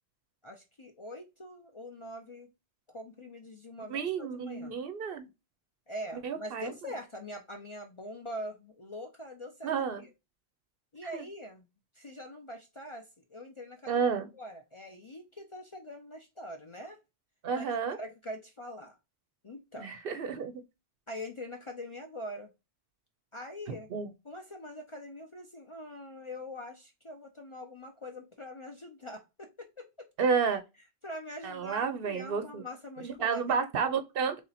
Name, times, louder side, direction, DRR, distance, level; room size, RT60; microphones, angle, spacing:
voice 1, 0.4-2.5 2.9-4.8 5.9-9.7 10.0-10.1 10.9-11.7 11.9-14.0 14.3-17.0 17.5-17.7 18.0-19.0 19.4-19.9 21.1-22.5 23.3-23.9 24.2-29.9 31.0-33.7, left 1 dB, 40° left, 0.5 m, -43 dB
voice 2, 3.9-5.2 6.2-6.7 9.6-10.0 11.1-11.2 13.9-14.3 17.4-18.0 19.8-20.6 23.9-24.1 30.2-30.6 31.4-32.6 33.0-34.4, right 6 dB, 65° right, 0.8 m, -31 dB
3.2 x 2.8 x 4.0 m
omnidirectional pair, 1.1 m